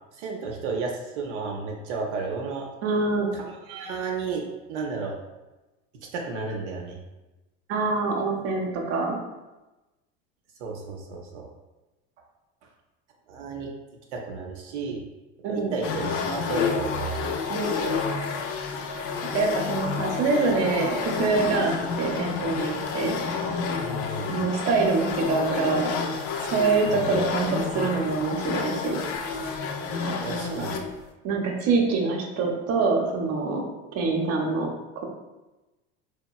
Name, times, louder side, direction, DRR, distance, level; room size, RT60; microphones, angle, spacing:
voice 1, 0.2-2.7 3.3-4.4 4.7-5.1 6.1-7.0 10.6-11.5 13.3-13.7 14.1-15.0 15.5-17.1 23.8-24.4 26.9-27.0 30.2-30.7, right 4 dB, 85° right, 0 dB, 0.5 m, -32 dB
voice 2, 2.8-3.3 7.7-9.2 15.4-15.7 17.5-17.7 19.3-23.2 24.3-25.9 26.5-29.0 30.0-30.8 31.2-33.6 33.9-34.7, right 4 dB, 45° right, 1 dB, 0.6 m, -25 dB
sound 1, 15.8-31.0, left 5 dB, 45° left, 0.4 m, -29 dB
2.9 x 2.2 x 2.3 m, 1.1 s
hypercardioid pair, 90°, 33 cm